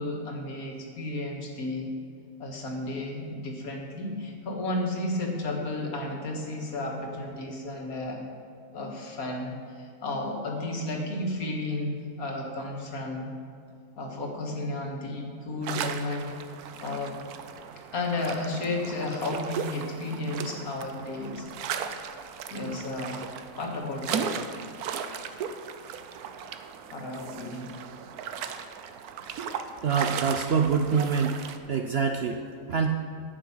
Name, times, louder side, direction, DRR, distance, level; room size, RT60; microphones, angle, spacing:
voice 1, 0.0-1.9 2.4-8.2 8.7-13.3 14.0-16.4 16.8-17.2 17.9-21.5 22.5-23.3 23.6-24.4 26.9-27.7, left 2 dB, 70° left, 0 dB, 2.0 m, -33 dB
sound 1, 15.6-31.6, right 7 dB, 80° right, 1.2 m, -37 dB
voice 2, 29.8-32.9, right 6 dB, 60° right, 4 dB, 0.6 m, -26 dB
11.0 x 8.5 x 5.6 m, 2.3 s
omnidirectional pair, 1.6 m